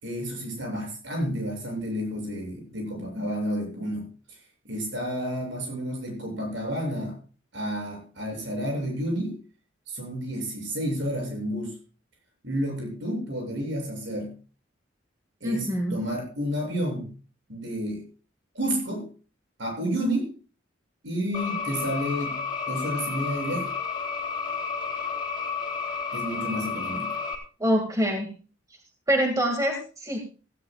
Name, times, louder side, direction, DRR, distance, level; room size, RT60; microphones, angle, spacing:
voice 1, 0.0-4.4 4.6-7.2 7.5-9.4 9.9-11.8 12.4-14.3 15.4-17.1 17.5-18.0 18.5-19.1 19.6-20.3 21.0-23.7 26.1-27.1, equal, 75° right, 1 dB, 8.0 m, -30 dB
voice 2, 15.4-16.0 27.6-28.3 29.1-30.2, equal, 15° right, 1 dB, 2.3 m, -25 dB
sound 1, 21.3-27.3, left 5 dB, 25° left, 3.2 m, -31 dB
17.5 x 15.5 x 2.5 m, 0.36 s
head